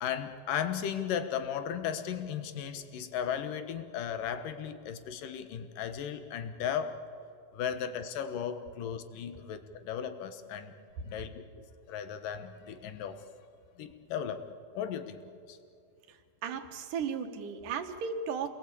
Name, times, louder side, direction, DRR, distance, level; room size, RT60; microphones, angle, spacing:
voice 1, 0.0-7.0 7.5-10.7 11.0-13.2 13.8-14.5 14.8-15.2 15.5-15.6, left 8 dB, 75° left, 9 dB, 2.8 m, -36 dB
voice 2, 16.1-18.5, right 6 dB, 70° right, 7 dB, 2.9 m, -35 dB
28.0 x 21.0 x 8.5 m, 2.3 s
omnidirectional pair, 4.0 m